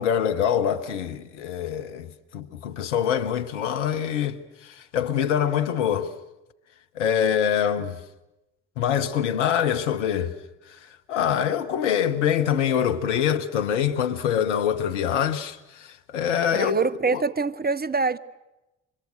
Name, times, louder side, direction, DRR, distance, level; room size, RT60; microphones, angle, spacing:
voice 1, 0.0-6.1 7.0-8.0 8.8-10.3 10.8-16.8 17.1-17.2, left 9 dB, 85° left, 1.1 m, -25 dB
voice 2, 16.5-18.2, right 4 dB, 25° right, 1.1 m, -25 dB
30.0 x 25.0 x 6.4 m
hypercardioid pair, 40°, 35 cm